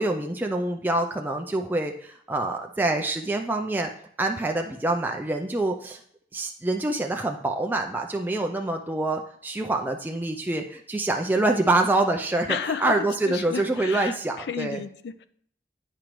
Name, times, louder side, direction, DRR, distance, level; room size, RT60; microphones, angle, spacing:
voice 1, 0.0-3.9 4.2-6.0 6.3-14.8, right 2 dB, 10° right, 3 dB, 0.4 m, -26 dB
voice 2, 12.5-13.0 13.3-14.2 14.5-15.3, left 6 dB, 75° left, 13 dB, 0.4 m, -32 dB
8.9 x 5.1 x 3.0 m, 0.63 s
head